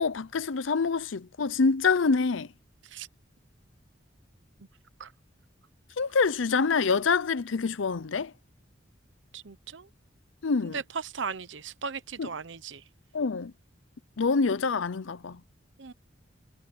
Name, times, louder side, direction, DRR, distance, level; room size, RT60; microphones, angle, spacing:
voice 1, 0.0-2.5 6.0-8.3 10.4-10.8 12.2-12.3 13.1-13.5 14.2-15.4, left 4 dB, 85° left, 0.6 m, -26 dB
voice 2, 9.3-9.9 10.6-12.8 15.8-15.9, right 5 dB, 75° right, 0.9 m, -37 dB
head